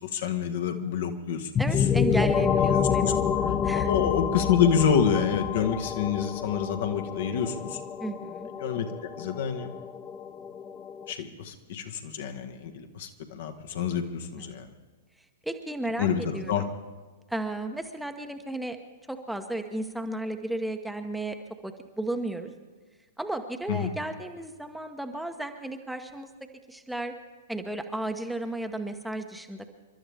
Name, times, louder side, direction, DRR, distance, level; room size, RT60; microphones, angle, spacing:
voice 1, 0.0-1.5 2.6-3.1 3.7-7.8 8.6-9.7 11.1-14.7 16.0-16.6 23.7-23.9, left 7 dB, 55° left, 6 dB, 1.5 m, -28 dB
sound 1, 1.5-11.1, left 7 dB, 20° left, 0.7 m, -28 dB
voice 2, 1.6-3.9 8.0-8.5 14.4-14.5 15.4-16.1 16.3-16.5 17.3-18.8 19.1-21.4 21.6-22.5 23.2-26.3 26.7-27.1 27.5-29.7, right 1 dB, ahead, 5 dB, 1.1 m, -33 dB
29.0 x 12.5 x 3.5 m, 1.3 s
figure-of-eight pair, 105°, 0 cm